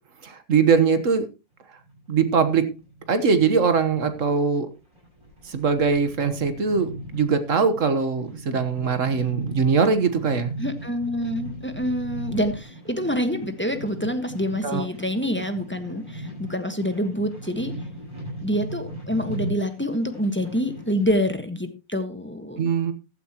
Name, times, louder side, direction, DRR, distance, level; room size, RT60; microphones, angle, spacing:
voice 1, 0.2-1.3 2.1-2.7 3.1-4.7 5.4-10.5 14.6-14.8 22.6-22.9, right 5 dB, 55° right, 10 dB, 1.6 m, -21 dB
sound 1, 1.8-21.1, right 1 dB, 20° right, 7.8 m, -38 dB
voice 2, 10.6-17.7 18.4-22.7, equal, 10° left, 7 dB, 1.3 m, -26 dB
15.0 x 12.0 x 3.0 m, 0.29 s
omnidirectional pair, 1.6 m